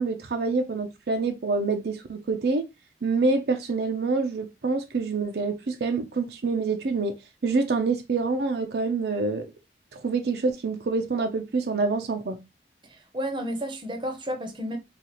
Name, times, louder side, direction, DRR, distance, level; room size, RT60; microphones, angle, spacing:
voice 1, 0.0-2.7 3.0-7.1 7.4-9.5 9.9-12.4, right 3 dB, 65° right, 0.5 m, -26 dB
voice 2, 12.9-14.8, equal, 25° right, 0.7 m, -32 dB
4.0 x 2.4 x 2.9 m
head